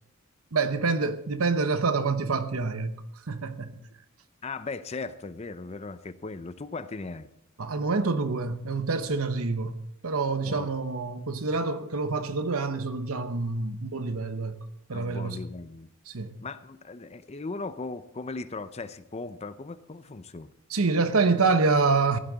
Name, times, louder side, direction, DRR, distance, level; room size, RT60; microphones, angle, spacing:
voice 1, 0.5-3.8 7.6-9.8 10.0-15.4 16.1-16.3 20.7-22.2, right 4 dB, 80° right, 1.0 m, -27 dB
voice 2, 4.4-7.3 10.4-10.7 14.9-15.9 16.4-20.5, left 3 dB, 30° left, 0.6 m, -38 dB
15.5 x 11.0 x 4.0 m
head